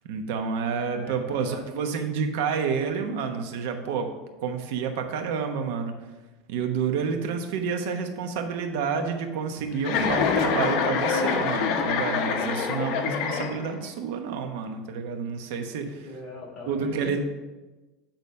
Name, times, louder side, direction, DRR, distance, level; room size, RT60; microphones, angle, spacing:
voice 1, 0.1-4.1 4.4-5.9 6.5-16.1 16.7-17.2, right 6 dB, 75° right, 5 dB, 1.0 m, -29 dB
voice 2, 0.6-1.6 15.7-17.2, left 2 dB, 30° left, -3 dB, 2.7 m, -41 dB
Chuckle chortle, 9.8-13.9, left 6 dB, 55° left, 0.9 m, -26 dB
8.8 x 4.0 x 5.5 m, 1.2 s
supercardioid pair, 150°, 0 cm